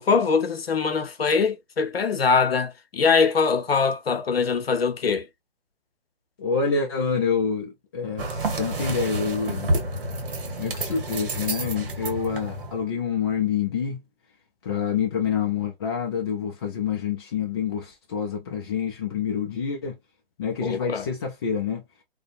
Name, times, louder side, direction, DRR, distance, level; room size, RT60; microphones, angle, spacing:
voice 1, 0.0-5.2 20.6-21.1, left 5 dB, 90° left, 0.6 m, -22 dB
voice 2, 6.4-9.7 10.6-14.0 14.6-20.0 20.4-21.8, left 6 dB, 25° left, 0.3 m, -27 dB
sound 1, 8.2-12.8, right 2 dB, 65° right, 1.0 m, -29 dB
2.5 x 2.1 x 2.4 m
figure-of-eight pair, 130°, 29 cm